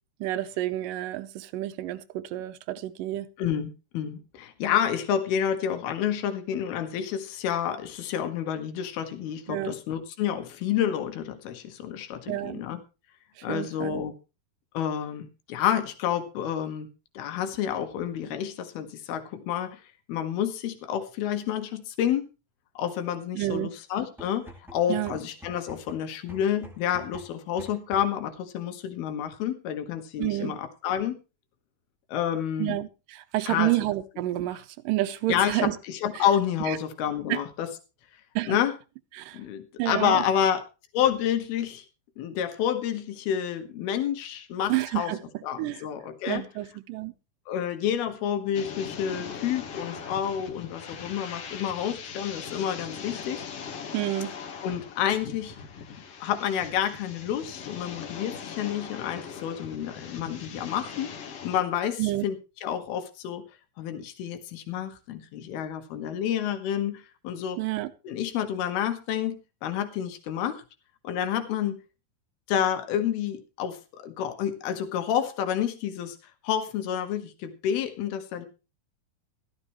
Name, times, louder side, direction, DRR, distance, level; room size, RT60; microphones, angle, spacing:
voice 1, 0.2-3.3 9.5-9.7 12.3-12.6 13.4-14.0 23.3-23.7 24.9-25.1 30.2-30.5 32.6-35.8 36.1-36.2 36.7-36.8 37.3-37.4 38.4-38.6 39.1-39.4 39.8-40.2 44.7-45.2 45.6-45.8 46.3-47.1 53.9-54.3 62.0-62.3 67.6-67.9, right 16 dB, 75° right, 2.2 m, -29 dB
voice 2, 3.4-12.8 13.4-14.1 14.7-16.9 17.1-19.8 20.1-22.3 22.8-31.2 32.1-32.8 33.4-33.7 35.3-37.7 38.5-38.7 39.3-40.6 40.9-41.8 42.2-45.1 45.4-46.4 47.5-53.5 54.6-55.6 56.2-62.4 62.6-63.4 63.8-67.6 68.0-70.6 71.0-71.8 72.5-76.2 76.4-78.5, left 9 dB, 85° left, 3.3 m, -29 dB
sound 1, 24.2-28.3, equal, 5° right, 0.3 m, -48 dB
sound 2, 48.5-61.6, left 6 dB, 55° left, 2.0 m, -40 dB
15.5 x 13.0 x 3.1 m
omnidirectional pair, 4.3 m